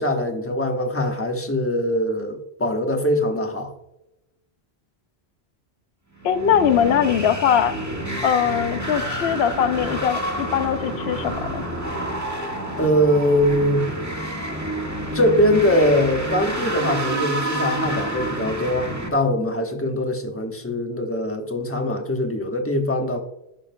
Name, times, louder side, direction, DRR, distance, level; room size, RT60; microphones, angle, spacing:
voice 1, 0.0-3.7 12.8-13.9 15.1-23.2, equal, 15° left, 3 dB, 1.1 m, -22 dB
voice 2, 6.2-7.8 8.2-11.6, left 8 dB, 75° left, 11 dB, 0.9 m, -21 dB
sound 1, 6.2-19.1, right 1 dB, 15° right, 1.6 m, -29 dB
12.0 x 7.2 x 2.2 m, 0.86 s
omnidirectional pair, 1.1 m